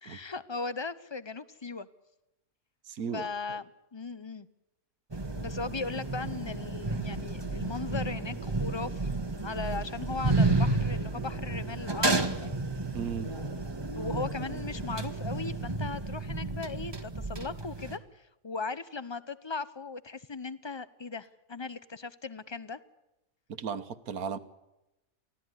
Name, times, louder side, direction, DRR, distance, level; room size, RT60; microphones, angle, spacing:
voice 1, 0.0-1.9 3.1-4.5 5.4-9.1 9.4-12.5 14.0-22.8, left 4 dB, 30° left, 16 dB, 0.5 m, -38 dB
voice 2, 2.9-3.3 12.9-13.3 23.5-24.4, right 6 dB, 75° right, 12 dB, 1.6 m, -35 dB
sound 1, 5.1-18.0, right 2 dB, 15° right, 1.3 m, -31 dB
24.0 x 16.0 x 9.7 m, 0.96 s
omnidirectional pair, 1.6 m